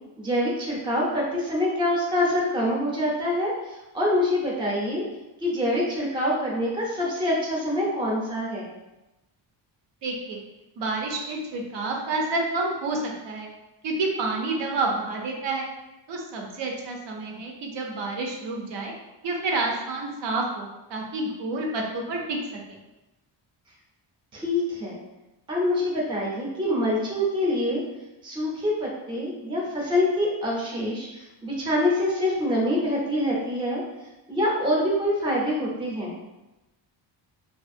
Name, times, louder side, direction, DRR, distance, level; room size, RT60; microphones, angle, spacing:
voice 1, 0.2-5.0 5.4-8.7 24.3-25.0 25.5-27.8 28.2-33.8 34.3-36.2, left 1 dB, 10° right, -4 dB, 0.4 m, -25 dB
voice 2, 10.0-10.4 10.8-13.5 13.8-15.7 16.1-18.9 19.2-22.8, right 2 dB, 75° right, 1 dB, 0.6 m, -29 dB
2.4 x 2.4 x 2.5 m, 1.0 s
wide cardioid pair, 155°, 45 cm